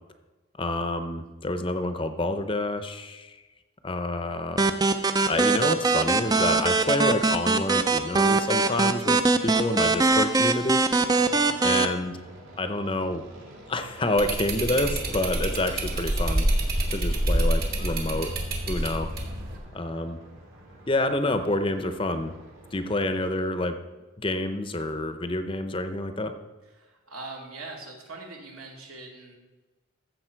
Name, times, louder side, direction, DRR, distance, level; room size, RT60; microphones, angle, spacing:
voice 1, 0.6-3.4 3.8-4.7 5.3-10.8 11.6-12.2 12.6-13.2 13.7-16.5 16.9-18.3 18.7-19.1 19.7-20.2 20.9-22.3 22.7-23.7 24.2-26.3, left 1 dB, 25° left, 8 dB, 0.6 m, -28 dB
sound 1, 4.6-11.9, right 3 dB, 20° right, 0.4 m, -22 dB
sound 2, 11.1-23.5, right 1 dB, 70° right, 2.9 m, -49 dB
voice 2, 11.1-11.5 26.7-29.4, right 3 dB, 90° right, 0 dB, 2.3 m, -42 dB
sound 3, 14.2-19.6, right 1 dB, 45° right, 1.8 m, -27 dB
14.0 x 7.0 x 4.5 m, 1.2 s
head